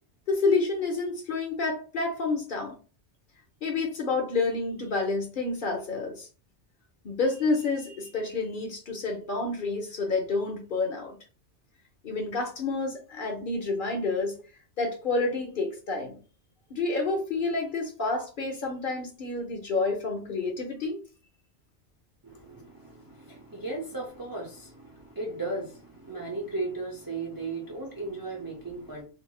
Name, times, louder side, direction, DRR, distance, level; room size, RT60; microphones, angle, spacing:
voice 1, 0.3-2.8 3.6-6.3 7.0-11.2 12.0-14.3 14.8-16.2 16.7-21.0, left 3 dB, 55° left, 1 dB, 0.7 m, -29 dB
voice 2, 22.2-29.0, right 2 dB, 25° right, -1 dB, 0.5 m, -36 dB
3.0 x 2.6 x 2.3 m, 0.37 s
omnidirectional pair, 1.2 m